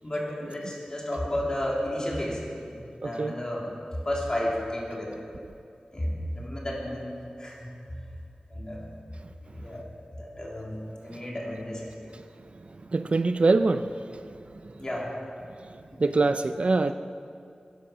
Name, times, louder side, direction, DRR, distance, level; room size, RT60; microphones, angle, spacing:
voice 1, 0.0-5.2 5.9-7.8 8.5-8.9 9.5-12.1 14.8-15.2 15.9-16.1, left 1 dB, 30° left, -3 dB, 3.1 m, -33 dB
voice 2, 3.0-3.3 12.9-13.9 16.0-16.9, right 3 dB, 50° right, 10 dB, 0.4 m, -23 dB
14.5 x 10.0 x 6.2 m, 2.4 s
wide cardioid pair, 90°, 3 cm